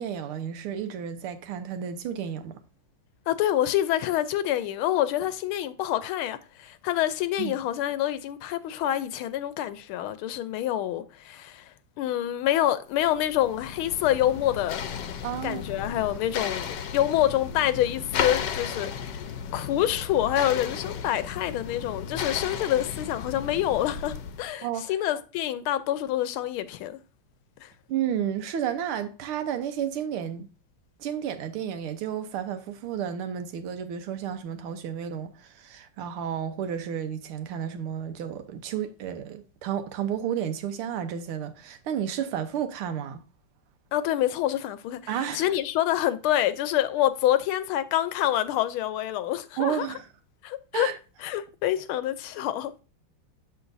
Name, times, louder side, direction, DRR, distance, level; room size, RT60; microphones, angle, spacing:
voice 1, 0.0-2.6 7.4-7.6 15.2-15.6 24.6-24.9 27.9-30.5 31.0-43.2 45.1-45.5 49.6-50.1 50.7-51.0, right 9 dB, 90° right, 1.8 m, -32 dB
voice 2, 3.3-11.7 12.0-14.8 15.4-19.2 19.5-27.0 27.6-27.7 43.9-45.0 45.3-49.9 50.4-50.9 51.2-52.7, left 12 dB, 80° left, 1.5 m, -27 dB
sound 1, 13.0-24.5, left 7 dB, 65° left, 1.2 m, -34 dB
7.1 x 7.0 x 2.6 m
omnidirectional pair, 2.3 m